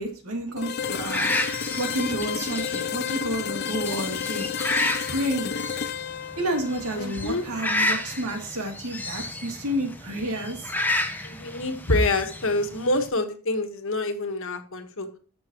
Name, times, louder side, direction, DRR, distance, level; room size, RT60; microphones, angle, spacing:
voice 1, 0.0-1.3 1.8-4.5 5.1-5.5 6.4-10.7, right 1 dB, 80° right, 2 dB, 2.8 m, -30 dB
sound 1, 0.6-8.4, left 7 dB, 45° left, 0.5 m, -32 dB
sound 2, 0.8-13.1, left 1 dB, 10° left, 0.9 m, -31 dB
voice 2, 7.0-7.4 11.2-15.1, left 2 dB, 60° left, 7 dB, 1.5 m, -26 dB
14.0 x 5.8 x 3.0 m, 0.39 s
head